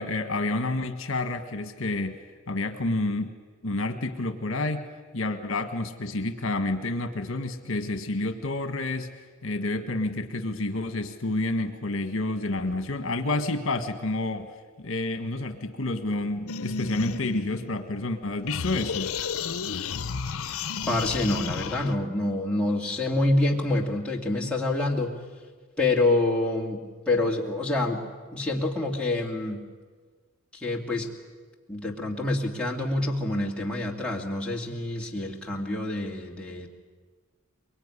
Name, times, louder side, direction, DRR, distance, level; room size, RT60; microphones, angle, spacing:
voice 1, 0.0-2.2 2.5-3.4 3.6-4.8 5.1-9.1 9.4-14.5 14.8-19.1, left 2 dB, 65° left, 7 dB, 1.6 m, -29 dB
sound 1, 16.5-18.1 18.5-22.0, left 5 dB, 85° left, 0.8 m, -32 dB
voice 2, 20.9-25.1 25.8-26.8 27.1-28.0 28.3-29.6 30.5-31.1 31.7-36.7, left 2 dB, 5° left, -3 dB, 2.5 m, -27 dB
23.5 x 23.0 x 9.9 m, 1.5 s
head